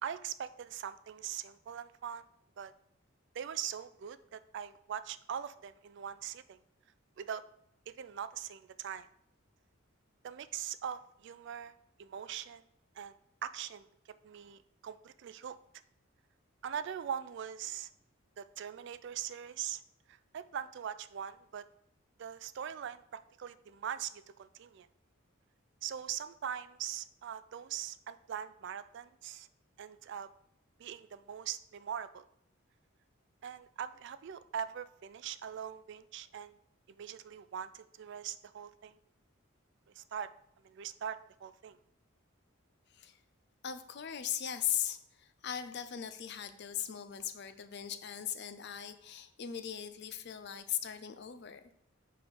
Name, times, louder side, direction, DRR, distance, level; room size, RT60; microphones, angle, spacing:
voice 1, 0.0-2.2 2.6-2.7 3.3-6.6 7.2-7.4 7.9-9.1 10.2-11.7 12.0-12.6 13.0-13.1 13.4-13.9 14.2-15.6 16.6-17.9 18.4-19.8 20.1-21.6 22.2-24.9 25.8-29.5 29.8-30.3 30.8-32.2 33.4-36.6 36.9-39.0 40.0-40.3 40.6-41.8, right 9 dB, 60° right, 14 dB, 0.3 m, -41 dB
voice 2, 43.6-51.6, left 9 dB, 55° left, 10 dB, 0.5 m, -39 dB
5.4 x 4.3 x 5.3 m, 0.75 s
head